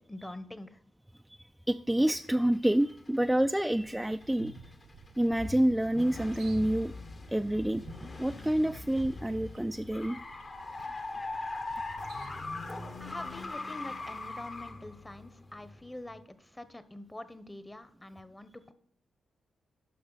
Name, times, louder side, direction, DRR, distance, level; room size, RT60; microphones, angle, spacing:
voice 1, 0.1-0.8 13.0-18.7, left 1 dB, 15° left, 13 dB, 1.0 m, -45 dB
voice 2, 1.3-4.7 5.2-6.9 7.3-7.8 8.1-10.2, right 1 dB, 5° right, 6 dB, 0.4 m, -28 dB
sound 1, 2.2-3.3 3.7-16.2, left 3 dB, 45° left, 1.2 m, -41 dB
sound 2, 3.8-13.6, right 5 dB, 85° right, 1.0 m, -54 dB
11.0 x 6.0 x 4.0 m, 0.68 s
supercardioid pair, 45°, 0 cm